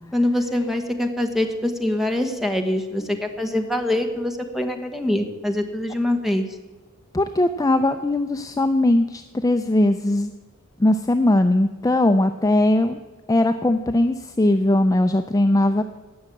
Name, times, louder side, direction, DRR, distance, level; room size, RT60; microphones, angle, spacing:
voice 1, 0.1-6.5, left 1 dB, ahead, 5 dB, 1.3 m, -24 dB
voice 2, 7.1-10.3 10.8-13.0 13.3-15.8, left 1 dB, 15° left, 7 dB, 0.5 m, -19 dB
17.5 x 6.4 x 8.5 m, 1.3 s
head